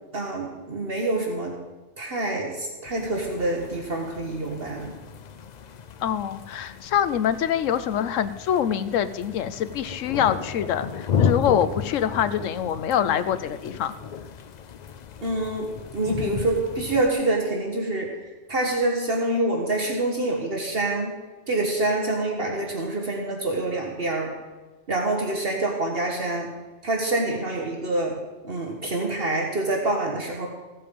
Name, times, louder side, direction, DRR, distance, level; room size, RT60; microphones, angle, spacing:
voice 1, 0.1-1.5 2.0-4.9 15.2-18.1 18.5-21.2 21.5-24.3 24.9-26.5 26.8-28.2 28.4-30.5, right 2 dB, 50° right, 0 dB, 1.5 m, -26 dB
sound 1, 2.8-17.1, left 6 dB, 55° left, 0.5 m, -33 dB
voice 2, 6.0-13.9, left 9 dB, 90° left, 13 dB, 1.1 m, -25 dB
15.0 x 7.6 x 5.4 m, 1.2 s
omnidirectional pair, 1.3 m